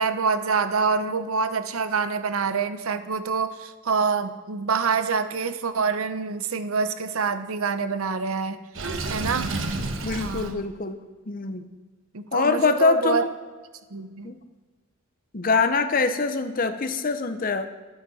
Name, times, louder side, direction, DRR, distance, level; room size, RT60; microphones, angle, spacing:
voice 1, 0.0-9.5 10.2-10.6 12.1-13.2 13.9-14.3, right 5 dB, 85° right, 11 dB, 0.8 m, -26 dB
Water / Sink (filling or washing), 8.7-10.5, right 2 dB, 65° right, 1.1 m, -30 dB
voice 2, 10.0-11.0 11.3-11.6 12.3-13.3 14.2-14.3 15.3-17.7, left 4 dB, 40° left, 9 dB, 0.7 m, -24 dB
12.5 x 10.5 x 4.2 m, 1.4 s
head